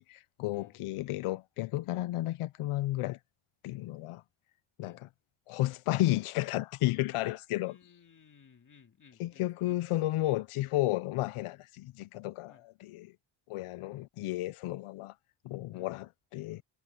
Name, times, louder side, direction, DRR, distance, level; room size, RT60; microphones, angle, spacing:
voice 1, 0.0-3.2 3.6-4.2 4.8-5.1 5.5-7.8 9.2-13.1 13.5-15.1 15.4-16.6, left 16 dB, 85° left, 0.6 m, -33 dB
voice 2, 7.6-9.8 12.5-12.7 15.7-15.9, left 6 dB, 40° left, 2.3 m, -60 dB
wide cardioid pair, 135°, 49 cm